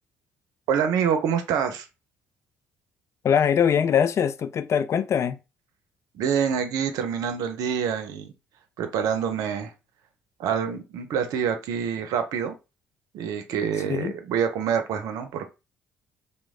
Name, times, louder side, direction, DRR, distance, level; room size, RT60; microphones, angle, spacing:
voice 1, 0.7-1.9 6.1-8.3 8.8-9.7 10.4-12.6 13.1-15.5, right 7 dB, 70° right, 0.6 m, -26 dB
voice 2, 3.2-5.4 13.9-14.1, left 8 dB, 45° left, 0.4 m, -22 dB
3.0 x 2.1 x 3.5 m
hypercardioid pair, 50°, 6 cm